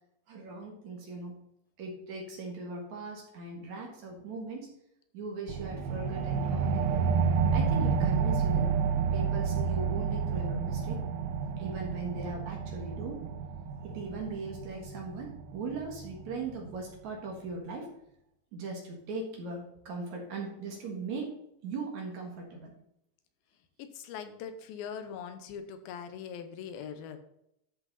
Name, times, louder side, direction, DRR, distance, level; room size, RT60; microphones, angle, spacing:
voice 1, 0.3-1.4 1.8-4.7 5.1-7.0 7.5-8.7 9.1-11.0 11.6-13.2 13.8-17.9 18.5-21.3 21.6-22.7, right 3 dB, 55° right, 0 dB, 2.6 m, -39 dB
sound 1, 5.5-16.6, right 6 dB, 85° right, 2.6 m, -30 dB
voice 2, 23.8-27.2, left 7 dB, 75° left, 8 dB, 2.5 m, -41 dB
13.5 x 5.6 x 4.1 m, 0.77 s
omnidirectional pair, 4.6 m